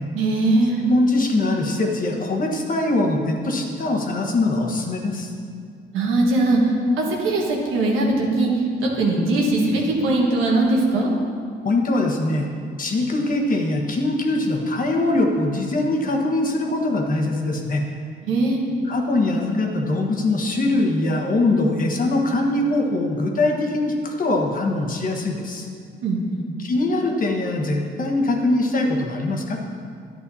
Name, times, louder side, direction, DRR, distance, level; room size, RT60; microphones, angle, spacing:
voice 1, 0.1-0.8 5.9-6.6 7.0-8.5 8.8-11.1 18.2-18.6 26.0-26.5, right 2 dB, 90° right, -2 dB, 1.5 m, -20 dB
voice 2, 0.8-5.3 11.6-12.5 12.8-17.8 18.8-25.7 26.6-29.6, left 2 dB, 45° left, 1 dB, 1.3 m, -22 dB
11.0 x 8.6 x 2.8 m, 2.2 s
cardioid pair, 90°, 20 cm